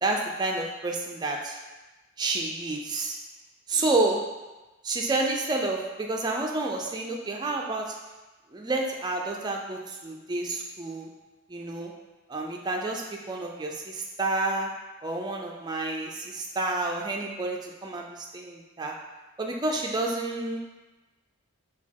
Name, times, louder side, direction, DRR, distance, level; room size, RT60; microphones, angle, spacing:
voice 1, 0.0-1.6 2.2-3.2 3.7-4.2 4.8-8.0 8.5-11.1 11.5-11.9 12.3-14.7 15.0-18.9 19.4-20.6, right 2 dB, 20° right, 1 dB, 0.3 m, -29 dB
5.0 x 2.3 x 3.5 m, 1.2 s
head